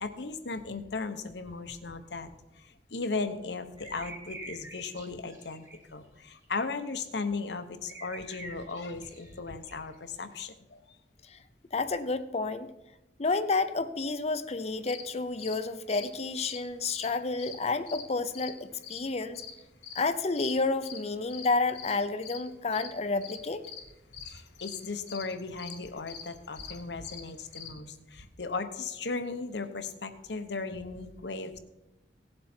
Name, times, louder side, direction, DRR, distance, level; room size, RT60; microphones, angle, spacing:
voice 1, 0.0-2.3 2.6-11.0 24.2-31.6, left 4 dB, 70° left, 10 dB, 0.9 m, -37 dB
sound 1, 3.8-5.8 6.4-6.6 7.9-9.9, right 1 dB, 15° right, 1.6 m, -46 dB
voice 2, 11.7-12.7 13.2-19.4 20.0-23.6, left 3 dB, 35° left, 11 dB, 0.6 m, -30 dB
sound 2, 14.6-27.7, left 7 dB, 85° left, 2.1 m, -46 dB
17.0 x 7.8 x 4.4 m, 0.96 s
head